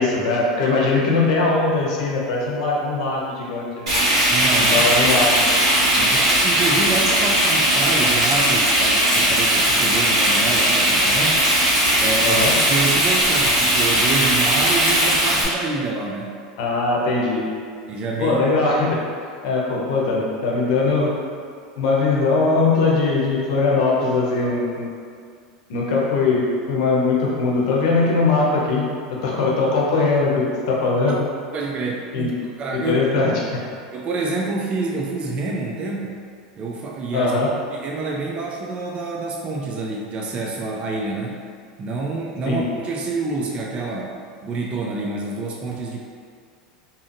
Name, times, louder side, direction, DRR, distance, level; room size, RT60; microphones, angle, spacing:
voice 1, 0.0-3.9 4.7-5.4 12.2-12.5 16.6-17.5 18.2-19.0 19.4-21.1 21.8-24.9 25.7-31.2 32.1-32.3 32.7-33.6 37.1-37.5 42.5-42.6, left 3 dB, 70° left, -3 dB, 0.7 m, -20 dB
Frying (food), 3.9-15.4, right 1 dB, 90° right, 1.2 m, -18 dB
voice 2, 4.2-4.8 5.6-11.5 12.0-16.4 17.9-18.4 31.1-31.2 31.5-32.3 32.6-33.0 33.9-36.2 36.6-37.3 37.7-41.4 41.8-46.0, right 3 dB, 35° right, -1 dB, 0.3 m, -27 dB
2.7 x 2.5 x 2.5 m, 2.1 s
hypercardioid pair, 105°, 3 cm